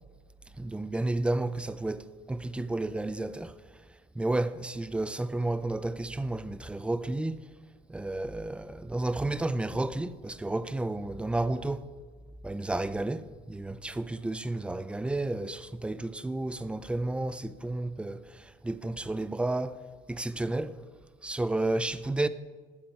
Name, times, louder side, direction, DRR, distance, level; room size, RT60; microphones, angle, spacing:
voice 1, 0.6-3.8 4.1-7.5 7.9-11.9 12.4-19.8 20.1-20.8 21.2-22.3, right 2 dB, 5° right, 0.5 m, -32 dB
15.5 x 12.5 x 4.5 m
cardioid pair, 135°, 16 cm